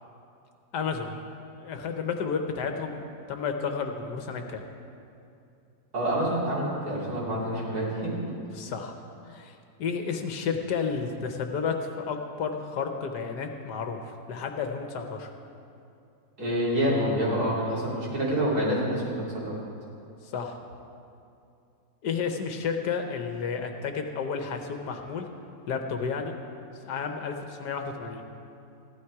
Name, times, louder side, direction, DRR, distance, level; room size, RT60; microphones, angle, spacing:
voice 1, 0.7-1.2 1.6-3.0 3.3-4.6 8.5-8.9 9.3-15.3 20.3-20.6 22.0-25.3 25.7-26.3 26.8-28.2, left 5 dB, 70° left, 5 dB, 1.4 m, -31 dB
voice 2, 5.9-8.3 16.4-19.5, equal, 60° right, -6 dB, 3.5 m, -27 dB
15.0 x 11.5 x 4.7 m, 2.6 s
omnidirectional pair, 1.9 m